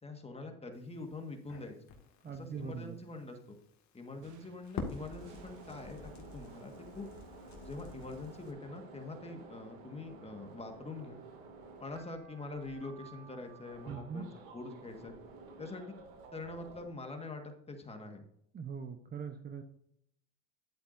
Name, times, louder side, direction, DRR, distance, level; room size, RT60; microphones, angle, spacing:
voice 1, 0.0-1.8 2.2-3.6 3.9-7.1 7.6-11.2 11.8-15.1 15.6-16.0 16.3-18.2, left 3 dB, 15° left, 4 dB, 1.7 m, -44 dB
Crackle, 0.7-8.5, left 4 dB, 45° left, 2.1 m, -48 dB
voice 2, 2.2-3.0 13.8-14.3 18.5-19.6, right 6 dB, 25° right, 6 dB, 0.9 m, -41 dB
sound 1, 4.2-7.9, right 7 dB, 50° right, 1.3 m, -62 dB
sound 2, 5.0-16.9, right 4 dB, 85° right, 2.4 m, -53 dB
11.0 x 8.4 x 2.7 m, 0.72 s
supercardioid pair, 100°, 39 cm